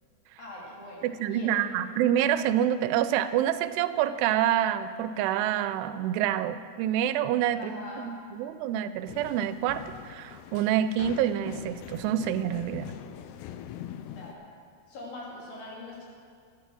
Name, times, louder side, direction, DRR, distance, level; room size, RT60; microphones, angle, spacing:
voice 1, 0.4-1.5 7.6-8.1 14.1-14.4 14.9-16.1, left 2 dB, 60° left, -4 dB, 4.3 m, -42 dB
voice 2, 1.0-12.9, right 10 dB, 85° right, 12 dB, 2.6 m, -27 dB
sound 1, 9.1-14.3, left 10 dB, 90° left, 2.7 m, -43 dB
11.5 x 10.5 x 6.2 m, 2.2 s
omnidirectional pair, 4.7 m